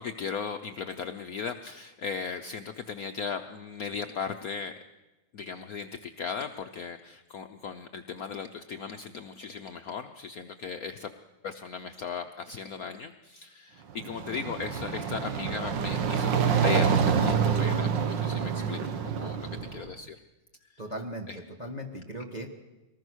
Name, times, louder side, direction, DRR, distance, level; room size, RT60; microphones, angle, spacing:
voice 1, 0.0-4.7 5.3-11.1 11.4-20.2 20.7-20.8 21.3-21.4, left 6 dB, 60° left, 7 dB, 1.1 m, -37 dB
sound 1, 13.9-19.9, right 7 dB, 75° right, 1.9 m, -27 dB
voice 2, 20.8-22.5, right 1 dB, 25° right, 1 dB, 1.6 m, -38 dB
24.0 x 19.5 x 6.3 m, 1.1 s
omnidirectional pair, 2.0 m